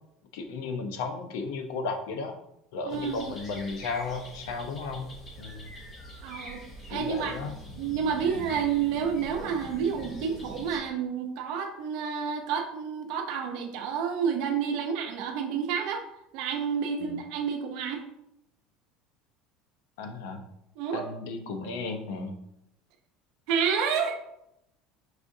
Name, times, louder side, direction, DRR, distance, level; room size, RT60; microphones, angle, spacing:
voice 1, 0.3-2.3 2.7-5.7 6.9-7.5 17.0-17.2 20.0-20.4 20.9-22.4, left 4 dB, 85° left, 5 dB, 0.6 m, -34 dB
voice 2, 2.8-3.3 6.2-6.6 6.9-7.4 7.8-16.0 16.3-18.0 20.8-21.1 23.5-24.2, right 7 dB, 60° right, 4 dB, 0.6 m, -29 dB
sound 1, 2.9-10.8, equal, 25° left, 0.9 m, -44 dB
4.9 x 3.6 x 2.6 m, 0.82 s
cardioid pair, 165°, 0 cm